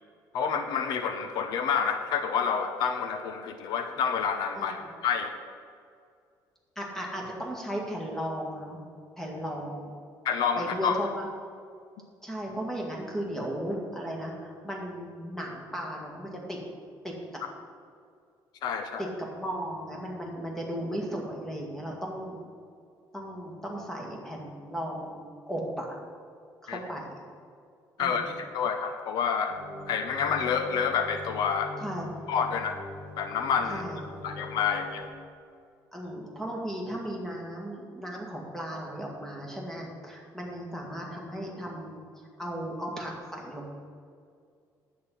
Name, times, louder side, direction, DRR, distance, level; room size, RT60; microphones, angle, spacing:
voice 1, 0.3-5.3 10.2-11.0 18.6-19.1 26.7-26.8 28.0-31.8 32.3-32.8 33.2-33.8 34.2-35.1, left 6 dB, 65° left, 7 dB, 0.8 m, -28 dB
voice 2, 6.8-8.8 9.2-10.0 10.6-11.3 12.2-16.6 17.0-17.1 19.0-22.4 23.1-25.2 25.5-25.9 26.6-27.2 28.0-28.3 31.8-32.1 33.7-34.0 35.9-43.7, equal, 5° left, -1 dB, 1.9 m, -36 dB
sound 1, 29.5-35.1, left 3 dB, 80° left, 2.0 m, -42 dB
10.0 x 8.5 x 5.6 m, 2.3 s
cardioid pair, 170°, 8 cm